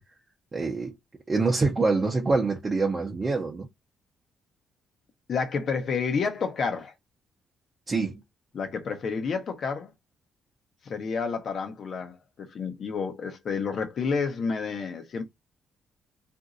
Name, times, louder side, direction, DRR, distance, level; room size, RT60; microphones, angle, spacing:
voice 1, 0.5-0.9 1.3-3.7 7.9-8.2, right 3 dB, 30° right, 0.7 m, -25 dB
voice 2, 5.3-6.9 7.9-8.0 8.5-9.9 10.8-15.2, left 5 dB, 55° left, 0.8 m, -30 dB
2.9 x 2.6 x 2.5 m
cardioid pair, 90°, 0 cm